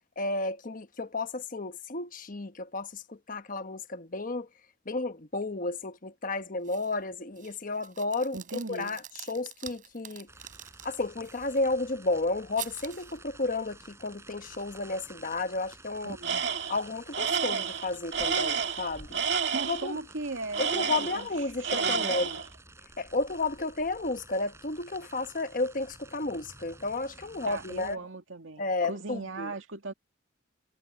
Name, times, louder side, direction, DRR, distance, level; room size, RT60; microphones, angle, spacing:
voice 1, 0.2-4.5 4.8-8.4 8.7-10.3 10.8-16.2 16.7-19.2 19.7-20.0 20.6-22.3 23.0-28.0 28.6-29.5, left 2 dB, 45° left, 1.1 m, -32 dB
sound 1, 6.6-7.0 7.4-11.6 12.6-13.2, right 10 dB, 45° right, 5.0 m, -46 dB
voice 2, 8.3-9.0 16.0-16.5 19.5-21.3 21.6-22.4 27.5-29.9, right 2 dB, 90° right, 2.2 m, -38 dB
sound 2, 10.3-28.0, right 2 dB, 15° right, 5.3 m, -51 dB
Tools, 16.2-16.8 17.1-19.9 20.5-21.4 21.6-22.5, right 6 dB, 60° right, 2.5 m, -30 dB
head